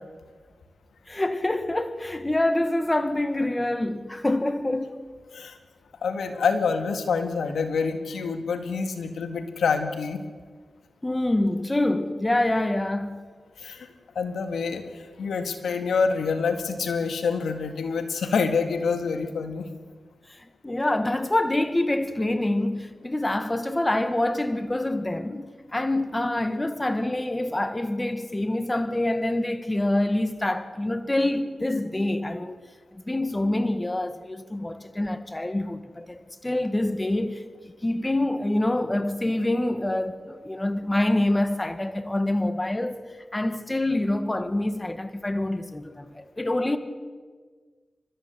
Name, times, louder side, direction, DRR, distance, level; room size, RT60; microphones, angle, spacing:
voice 1, 1.1-5.1 11.0-13.2 20.6-32.6 32.9-43.0 43.3-46.8, left 1 dB, 20° left, 1.7 m, -26 dB
voice 2, 6.0-10.2 13.6-13.9 14.2-19.7, left 5 dB, 85° left, 2.0 m, -27 dB
29.5 x 13.5 x 8.2 m
cardioid pair, 60°, 0 cm